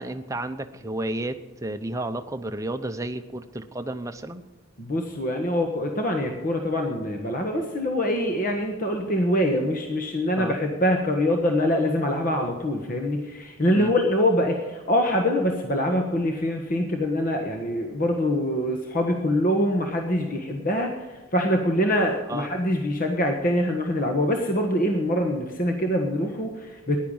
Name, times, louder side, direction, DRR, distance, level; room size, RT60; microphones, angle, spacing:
voice 1, 0.0-4.4 10.3-10.6 13.7-13.9 22.3-22.5, right 1 dB, 15° right, 7 dB, 0.8 m, -32 dB
voice 2, 4.8-27.0, left 1 dB, 40° left, 3 dB, 1.4 m, -24 dB
15.0 x 10.5 x 5.6 m, 1.2 s
head